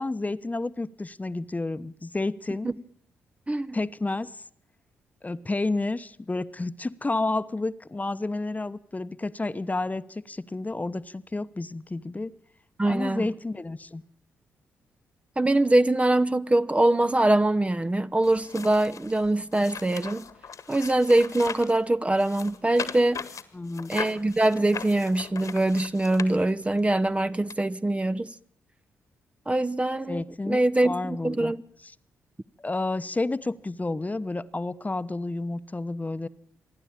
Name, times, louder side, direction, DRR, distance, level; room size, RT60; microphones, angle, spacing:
voice 1, 0.0-2.7 3.7-4.4 5.2-12.3 12.8-14.0 23.5-23.9 30.1-31.5 31.8-31.9 32.6-36.3, left 2 dB, 25° left, 1.0 m, -30 dB
voice 2, 12.8-13.3 15.4-20.3 20.7-23.2 23.9-28.3 29.5-31.6, right 1 dB, 20° right, 0.8 m, -23 dB
sound 1, 18.2-21.8 22.2-26.8 27.5-27.6, left 6 dB, 55° left, 1.6 m, -39 dB
27.5 x 11.0 x 8.8 m
hypercardioid pair, 40°, 7 cm